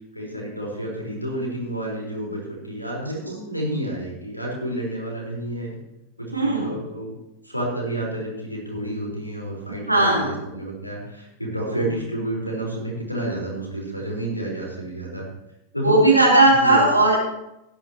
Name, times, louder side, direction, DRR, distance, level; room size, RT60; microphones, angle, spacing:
voice 1, 0.1-5.8 6.2-7.1 7.4-15.2 15.7-16.0 16.6-16.9, right 1 dB, 90° left, -2 dB, 4.6 m, -30 dB
voice 2, 6.3-6.8 9.7-10.4 11.7-11.9 15.8-17.2, right 2 dB, 85° right, -4 dB, 4.1 m, -17 dB
17.0 x 10.5 x 3.1 m, 0.89 s
figure-of-eight pair, 90°, 0 cm